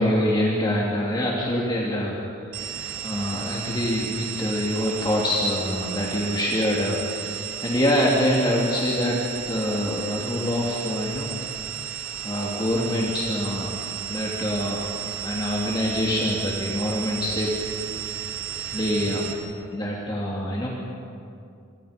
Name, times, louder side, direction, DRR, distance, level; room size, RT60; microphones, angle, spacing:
voice 1, 0.0-2.2 3.0-9.2 9.5-11.3 12.2-13.7 14.1-14.9 15.2-17.5 18.7-19.3 19.7-20.7, equal, 20° left, -4 dB, 3.0 m, -25 dB
sound 1, 2.5-19.3, right 9 dB, 65° right, 3.9 m, -34 dB
29.5 x 27.5 x 5.3 m, 2.5 s
head